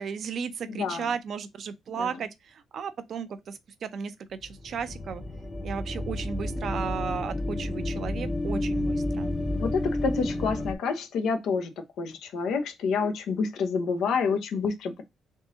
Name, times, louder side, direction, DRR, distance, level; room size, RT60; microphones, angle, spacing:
voice 1, 0.0-5.2 5.6-9.3, right 6 dB, 60° right, 0.6 m, -34 dB
voice 2, 0.7-1.1 1.9-2.1 9.2-11.7 12.0-15.0, left 5 dB, 80° left, 0.8 m, -28 dB
sound 1, 4.4-10.8, left 1 dB, 20° left, 0.7 m, -31 dB
3.7 x 2.7 x 3.8 m
cardioid pair, 90°, 0 cm